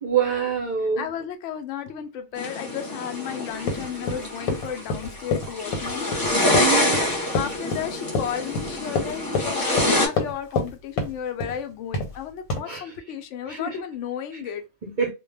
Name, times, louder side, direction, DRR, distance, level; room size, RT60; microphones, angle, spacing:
voice 1, 0.0-1.1 6.6-7.0 12.7-12.8 13.5-13.7 14.8-15.1, right 7 dB, 50° right, 0.6 m, -25 dB
voice 2, 1.0-6.3 7.3-14.7, left 9 dB, 65° left, 0.8 m, -33 dB
sound 1, 2.4-10.1, left 1 dB, 20° left, 0.6 m, -26 dB
Run, 3.6-10.7 11.0-11.6 11.9-12.2 12.5-12.6, left 3 dB, 85° left, 1.2 m, -27 dB
2.3 x 2.1 x 3.2 m
omnidirectional pair, 1.5 m